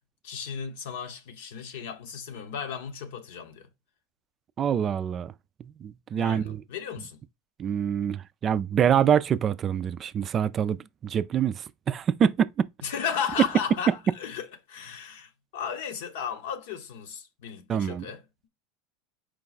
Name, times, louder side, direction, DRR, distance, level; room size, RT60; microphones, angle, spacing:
voice 1, 0.2-3.7 6.2-7.2 12.8-18.2, left 7 dB, 75° left, 0.9 m, -35 dB
voice 2, 4.6-5.3 5.8-6.6 7.6-12.7 17.7-18.1, right 8 dB, 35° right, 0.3 m, -25 dB
4.6 x 2.3 x 4.0 m
hypercardioid pair, 95°, 0 cm